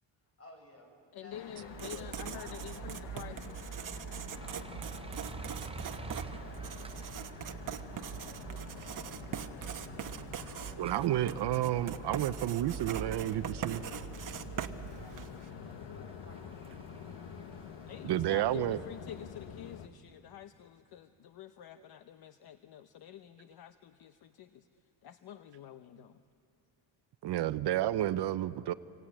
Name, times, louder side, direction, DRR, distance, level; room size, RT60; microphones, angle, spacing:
voice 1, 0.2-3.9 4.4-7.4 8.1-8.9 9.5-10.2 10.5-11.5 12.1-17.2 28.1-28.4, left 1 dB, 35° left, 3 dB, 6.6 m, -58 dB
voice 2, 1.1-3.6 17.9-24.7 25.0-26.2, left 10 dB, 55° left, 10 dB, 0.8 m, -48 dB
sound 1, 1.3-19.9, left 8 dB, 75° left, 1.4 m, -48 dB
sound 2, 1.6-18.5, right 3 dB, 15° right, 0.7 m, -53 dB
Writing, 1.7-15.5, right 8 dB, 45° right, 1.1 m, -42 dB
voice 3, 10.8-13.8 18.0-18.8 27.2-28.7, right 13 dB, 65° right, 14 dB, 0.7 m, -31 dB
25.5 x 25.5 x 8.9 m, 2.6 s
cardioid pair, 125°, 44 cm